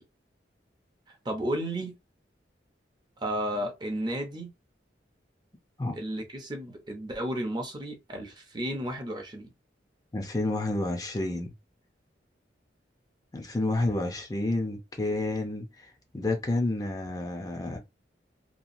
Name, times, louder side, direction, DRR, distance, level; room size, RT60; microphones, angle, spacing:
voice 1, 1.2-1.9 3.2-4.5 5.9-9.5, right 1 dB, 25° right, 0.6 m, -33 dB
voice 2, 10.1-11.5 13.3-17.8, left 2 dB, 20° left, 0.5 m, -30 dB
2.8 x 2.3 x 2.5 m
head